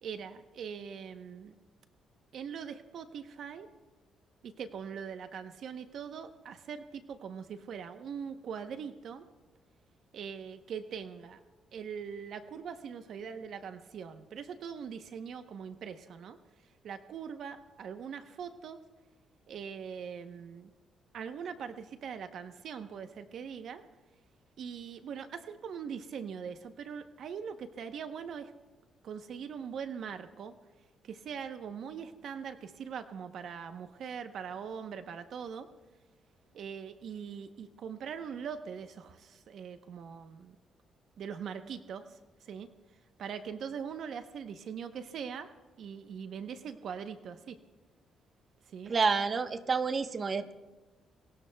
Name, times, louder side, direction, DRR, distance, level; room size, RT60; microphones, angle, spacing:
voice 1, 0.0-1.5 2.3-3.7 4.4-9.2 10.1-11.4 11.7-16.4 16.8-18.8 19.5-20.7 21.1-23.8 24.6-28.5 29.0-30.5 31.0-35.7 36.5-40.6 41.2-42.7 43.2-45.5 45.8-47.6 48.7-48.9, right 7 dB, 65° right, 8 dB, 0.9 m, -42 dB
voice 2, 48.9-50.5, right 4 dB, 40° right, 8 dB, 1.0 m, -29 dB
28.0 x 22.0 x 2.3 m, 1.2 s
cardioid pair, 90°, 0 cm